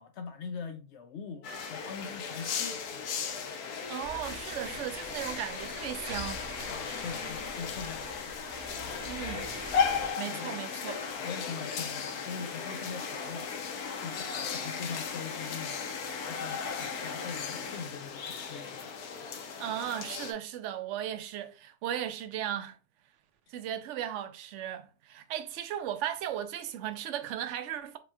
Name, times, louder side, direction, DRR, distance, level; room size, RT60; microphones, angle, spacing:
voice 1, 0.0-3.1 6.7-8.4 10.3-10.6 11.2-13.6 14.0-15.8 16.1-18.9 23.5-23.6, left 5 dB, 90° left, 0.6 m, -42 dB
sound 1, 1.4-20.3, left 6 dB, 70° left, 1.2 m, -36 dB
voice 2, 3.9-6.4 9.0-9.5 10.2-11.0 19.6-22.8 23.5-28.0, right 11 dB, 70° right, 0.7 m, -36 dB
sound 2, 4.0-10.1, right 1 dB, 55° right, 1.4 m, -45 dB
4.9 x 3.0 x 2.3 m
omnidirectional pair, 1.7 m